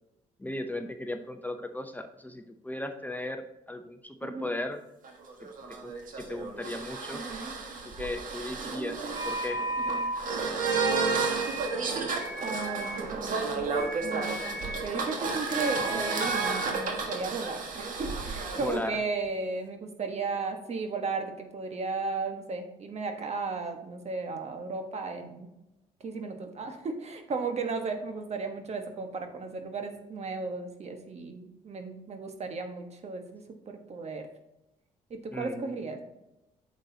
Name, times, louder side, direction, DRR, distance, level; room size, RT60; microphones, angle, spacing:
voice 1, 0.4-4.8 5.7-5.9 6.2-7.2 8.0-9.6 18.6-19.0 35.3-35.8, left 1 dB, 10° left, 6 dB, 0.7 m, -36 dB
sound 1, 5.0-18.8, right 4 dB, 65° right, 1.5 m, -32 dB
voice 2, 7.1-7.5 9.9-10.1 12.4-13.6 14.0-25.5 26.0-34.3 35.1-36.0, right 4 dB, 45° right, 5 dB, 1.3 m, -35 dB
sound 2, 9.1-10.2 10.6-11.9 12.1-13.1 13.7-14.9 15.5-16.8, right 1 dB, 25° right, 2.3 m, -40 dB
8.9 x 6.4 x 2.8 m, 0.92 s
supercardioid pair, 70°, 15 cm